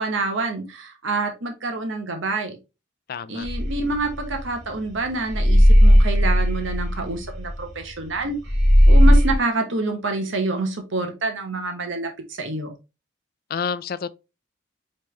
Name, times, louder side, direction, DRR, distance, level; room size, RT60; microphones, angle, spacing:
voice 1, 0.0-2.6 3.3-8.3 8.9-12.7, right 3 dB, 70° right, 1.0 m, -27 dB
voice 2, 3.1-3.5 13.5-14.1, left 6 dB, 45° left, 0.3 m, -29 dB
sound 1, 3.4-4.9 5.3-8.2 8.5-9.4, equal, 50° right, 2.6 m, -15 dB
5.3 x 3.2 x 3.1 m
head